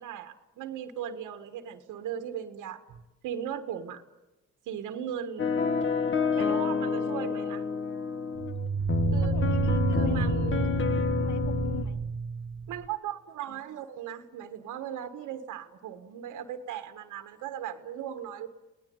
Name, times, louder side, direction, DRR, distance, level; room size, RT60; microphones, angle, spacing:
voice 1, 0.0-2.8 3.2-4.0 4.7-5.5 6.3-7.6 9.1-9.4 9.9-10.8 12.7-18.5, right 9 dB, 85° right, 7 dB, 1.6 m, -37 dB
sound 1, 2.9-3.0 8.4-12.9, right 5 dB, 55° right, 1.7 m, -30 dB
sound 2, 5.4-11.8, left 6 dB, 40° left, 1.5 m, -29 dB
voice 2, 6.4-6.8 9.2-10.3 10.9-12.0, left 7 dB, 75° left, 7 dB, 2.7 m, -44 dB
28.0 x 18.5 x 9.5 m, 1.1 s
cardioid pair, 90°, 30 cm